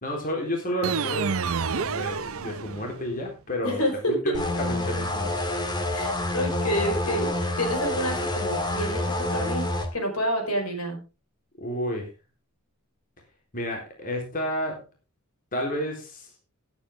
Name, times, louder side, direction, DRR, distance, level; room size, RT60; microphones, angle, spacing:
voice 1, 0.0-5.4 11.6-12.1 13.5-14.8 15.5-16.3, equal, 40° left, 1 dB, 3.8 m, -31 dB
sound 1, 0.8-3.1, right 6 dB, 65° right, 0.6 m, -29 dB
voice 2, 3.6-4.4 5.9-7.3 7.6-9.7 9.9-11.0, equal, 80° left, 4 dB, 4.9 m, -28 dB
sound 2, 4.3-9.9, left 1 dB, 20° left, 1.9 m, -28 dB
17.0 x 9.0 x 3.7 m, 0.30 s
head